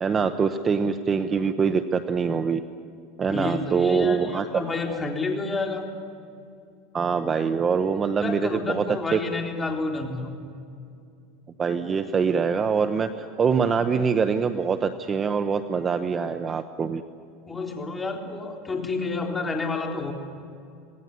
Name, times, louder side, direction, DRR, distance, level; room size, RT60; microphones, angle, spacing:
voice 1, 0.0-2.6 3.2-5.0 6.9-8.8 9.1-9.2 11.6-17.0, right 6 dB, 20° right, 9 dB, 0.9 m, -24 dB
voice 2, 3.3-5.8 8.2-10.3 17.5-20.1, left 3 dB, 15° left, 1 dB, 3.8 m, -29 dB
26.0 x 18.5 x 9.7 m, 2.5 s
supercardioid pair, 140°, 0 cm